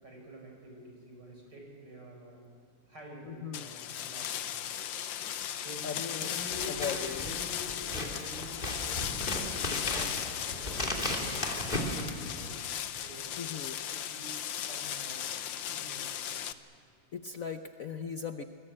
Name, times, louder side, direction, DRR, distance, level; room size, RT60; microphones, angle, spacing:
voice 1, 0.0-2.4 2.9-4.5 5.5-6.9 7.2-9.2 9.7-12.6 13.0-13.3 13.9-14.3 14.7-15.4 15.7-16.4, equal, 60° right, 1 dB, 5.9 m, -48 dB
voice 2, 3.2-3.7 5.8-6.3 6.8-7.2 13.4-13.8 17.1-18.4, left 6 dB, 55° left, 7 dB, 1.0 m, -38 dB
sound 1, 3.5-16.5, left 10 dB, 75° left, 1.6 m, -37 dB
Scissors, 6.5-12.7, left 1 dB, 25° left, 3.0 m, -36 dB
27.0 x 20.5 x 8.7 m, 2.4 s
omnidirectional pair, 2.1 m